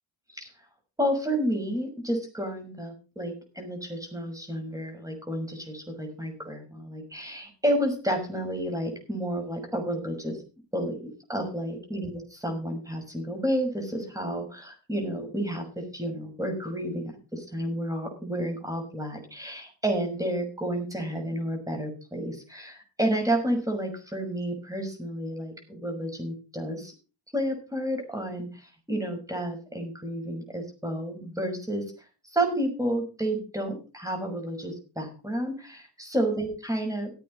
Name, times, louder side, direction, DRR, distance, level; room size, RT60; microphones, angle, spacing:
voice 1, 1.0-10.4 10.7-26.9 27.3-28.6 28.9-31.9 32.3-37.1, right 1 dB, 10° right, 4 dB, 6.3 m, -31 dB
15.5 x 8.4 x 5.2 m, 0.33 s
cardioid pair, 105°, 44 cm